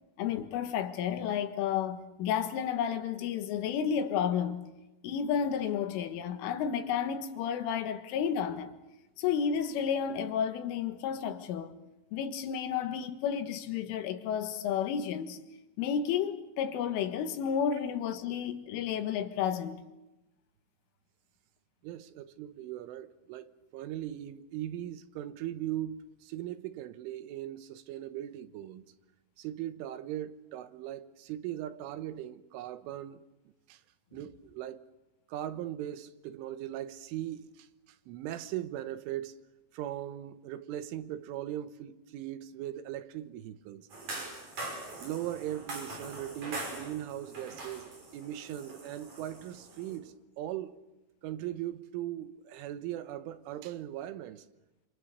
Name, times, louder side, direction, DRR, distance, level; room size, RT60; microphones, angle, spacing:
voice 1, 0.2-4.6 5.0-8.7 9.2-11.7 12.1-15.4 15.8-19.8, left 8 dB, 85° left, 4.0 m, -31 dB
voice 2, 21.8-28.8 29.4-33.2 33.7-33.8 34.1-34.8 35.3-39.4 39.7-43.9 45.0-50.8 51.2-54.5, right 12 dB, 80° right, 3.6 m, -39 dB
sound 1, 43.9-50.0, right 2 dB, 40° right, 6.7 m, -43 dB
27.5 x 27.0 x 6.8 m
omnidirectional pair, 5.6 m